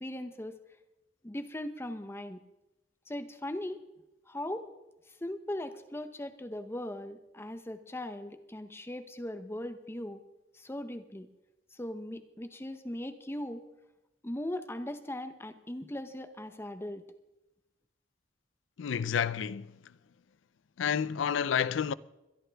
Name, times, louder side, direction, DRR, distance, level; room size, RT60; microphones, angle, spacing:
voice 1, 0.0-0.5 1.2-2.4 3.1-3.8 4.3-4.7 5.1-10.2 10.5-11.3 11.7-13.6 14.2-17.0, left 1 dB, 15° left, 0.7 m, -39 dB
voice 2, 18.8-19.7 20.8-21.9, left 7 dB, 90° left, 0.4 m, -29 dB
22.5 x 11.5 x 3.4 m
head